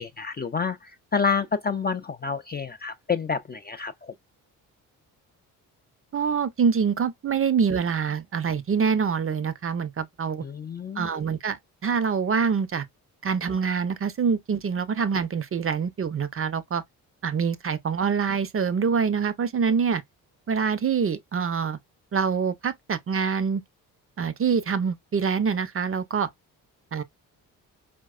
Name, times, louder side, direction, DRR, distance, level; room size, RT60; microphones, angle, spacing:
voice 1, 0.0-4.1 10.4-11.1, left 5 dB, 25° left, 0.4 m, -28 dB
voice 2, 6.1-10.4 11.0-12.8 13.2-16.8 17.2-20.0 20.5-21.8 22.1-23.6 24.2-26.3 26.9-27.0, right 6 dB, 30° right, 0.6 m, -25 dB
4.5 x 2.1 x 2.4 m
hypercardioid pair, 45°, 46 cm